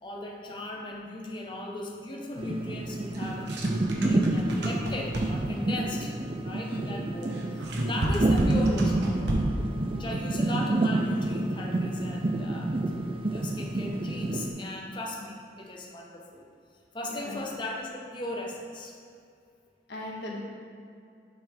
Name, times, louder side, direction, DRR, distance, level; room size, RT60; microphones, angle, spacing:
voice 1, 0.0-3.5 4.0-6.1 6.4-9.4 9.9-12.7 13.2-16.5 16.9-18.9, left 1 dB, 25° left, -1 dB, 0.7 m, -37 dB
sound 1, 2.4-14.5, right 2 dB, 30° right, 0.4 m, -29 dB
sound 2, 3.1-5.6 7.2-9.7, right 1 dB, 75° right, 0.9 m, -31 dB
voice 2, 6.7-7.0 10.1-10.2 10.4-10.5 17.0-17.4 19.9-20.4, left 1 dB, 65° left, -3 dB, 1.4 m, -39 dB
7.6 x 4.6 x 3.5 m, 2.4 s
head